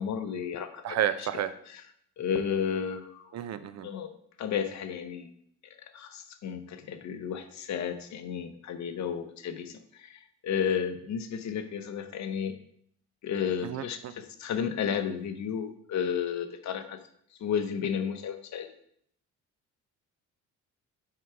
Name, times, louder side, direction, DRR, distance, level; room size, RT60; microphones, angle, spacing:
voice 1, 0.0-1.3 1.7-1.8 2.2-3.3 3.8-4.1 4.4-5.3 5.9-12.6 13.2-17.0 17.4-18.7, left 7 dB, 65° left, 9 dB, 0.8 m, -32 dB
voice 2, 0.8-1.5 3.3-3.9 13.6-14.1, right 10 dB, 60° right, 12 dB, 0.5 m, -31 dB
5.8 x 4.7 x 4.8 m, 0.68 s
cardioid pair, 90°, 30 cm